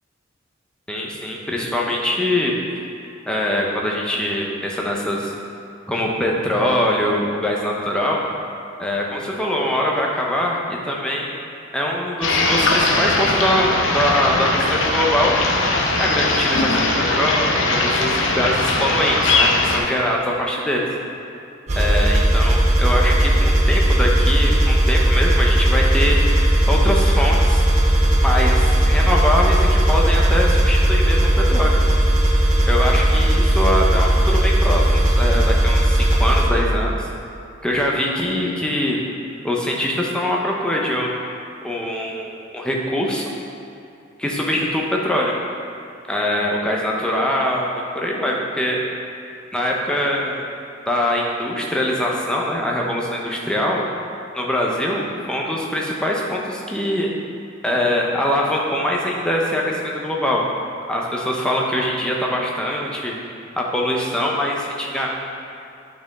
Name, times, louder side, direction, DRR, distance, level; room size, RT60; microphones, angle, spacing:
voice 1, 0.9-2.5 3.3-5.3 5.9-8.2 8.8-11.3 11.7-15.4 16.0-20.9 21.7-27.6 28.2-31.8 32.6-37.1 37.6-39.0 39.4-41.1 41.6-43.3 44.2-45.3 46.1-48.8 49.5-50.5 50.9-53.8 54.3-57.1 57.6-60.4 60.9-63.1 63.6-65.1, left 1 dB, 5° left, -3 dB, 0.8 m, -23 dB
sound 1, 12.2-19.8, left 2 dB, 80° left, 0.8 m, -20 dB
sound 2, 21.7-36.5, right 1 dB, 35° right, 0.9 m, -17 dB
9.2 x 4.6 x 3.6 m, 2.6 s
head